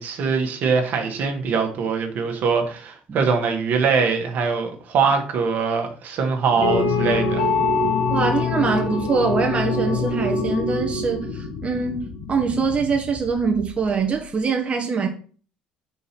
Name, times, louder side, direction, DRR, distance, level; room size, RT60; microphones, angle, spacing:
voice 1, 0.0-7.5, right 5 dB, 60° right, 1.5 m, -22 dB
sound 1, 6.6-14.1, left 3 dB, 75° left, 1.2 m, -24 dB
voice 2, 8.1-15.1, right 5 dB, 35° right, 1.2 m, -23 dB
5.5 x 4.7 x 4.4 m
hypercardioid pair, 65°, 4 cm